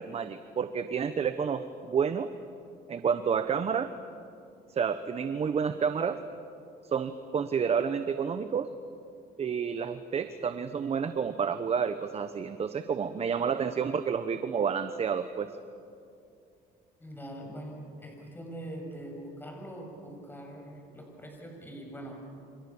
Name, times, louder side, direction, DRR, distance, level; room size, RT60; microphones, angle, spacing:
voice 1, 0.0-2.3 2.9-3.9 4.7-6.2 6.8-8.7 9.4-15.5, right 6 dB, 40° right, 10 dB, 1.1 m, -30 dB
voice 2, 17.0-22.3, right 1 dB, 10° left, 2 dB, 7.4 m, -43 dB
29.0 x 27.0 x 7.4 m, 2.5 s
cardioid pair, 110°, 17 cm